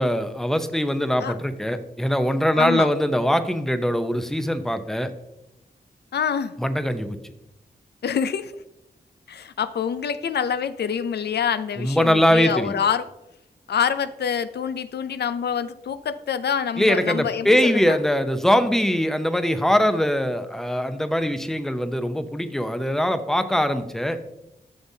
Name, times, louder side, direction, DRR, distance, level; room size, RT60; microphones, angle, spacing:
voice 1, 0.0-5.1 6.6-7.2 11.8-12.8 16.8-24.2, equal, ahead, 9 dB, 0.7 m, -22 dB
voice 2, 2.6-2.9 6.1-6.5 8.0-8.5 9.3-13.1 13.7-18.0, left 7 dB, 85° left, 13 dB, 0.5 m, -26 dB
11.5 x 6.9 x 2.7 m, 0.90 s
wide cardioid pair, 90°, 17 cm